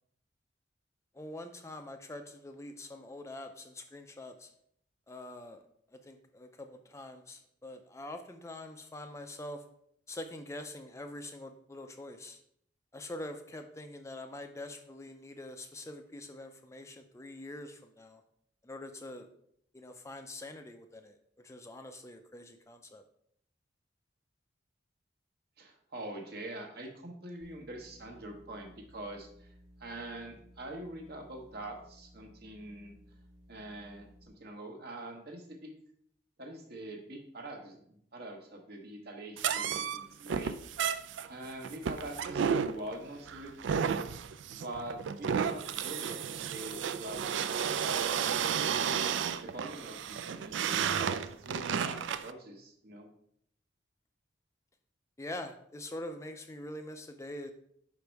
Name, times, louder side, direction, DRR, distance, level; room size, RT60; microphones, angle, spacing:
voice 1, 1.1-4.5 5.1-5.6 5.9-9.6 10.1-12.4 12.9-18.2 18.6-19.3 19.7-23.0 55.2-57.5, left 1 dB, 15° left, 6 dB, 0.4 m, -44 dB
voice 2, 25.6-29.5 29.8-32.9 33.5-35.7 36.4-40.6 41.3-43.9 44.5-48.1 48.5-48.9 49.4-53.1, right 1 dB, 55° right, 3 dB, 1.2 m, -44 dB
sound 1, 27.4-34.3, equal, 35° right, 1.4 m, -58 dB
sound 2, 39.4-52.3, right 7 dB, 75° right, 0.3 m, -32 dB
5.3 x 5.1 x 4.6 m, 0.69 s
head